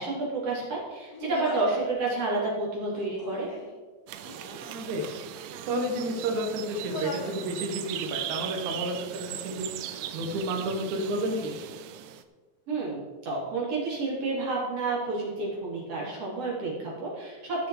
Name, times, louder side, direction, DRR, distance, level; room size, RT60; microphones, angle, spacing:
voice 1, 0.0-3.5 12.7-17.7, right 3 dB, 45° right, -5 dB, 4.2 m, -30 dB
Human voice, 1.1-1.9 2.8-3.8 4.2-4.9 5.5-6.5 6.9-7.5 7.8-8.5, left 2 dB, 55° left, 1.0 m, -42 dB
sound 1, 4.1-12.2, right 11 dB, 80° right, 2.0 m, -39 dB
voice 2, 4.7-5.2 5.6-11.6, right 1 dB, 60° right, 3 dB, 2.7 m, -31 dB
15.5 x 6.3 x 4.9 m, 1.3 s
omnidirectional pair, 4.0 m